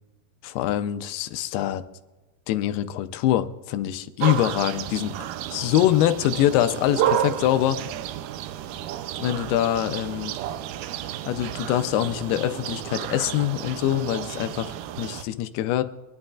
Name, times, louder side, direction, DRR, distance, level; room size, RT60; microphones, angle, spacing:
voice 1, 0.4-1.8 2.5-7.8 9.2-10.3 11.3-15.8, left 12 dB, 90° left, 10 dB, 2.6 m, -24 dB
sound 1, 4.2-15.2, right 11 dB, 80° right, 2.4 m, -31 dB
23.5 x 11.5 x 2.4 m, 1.1 s
omnidirectional pair, 4.4 m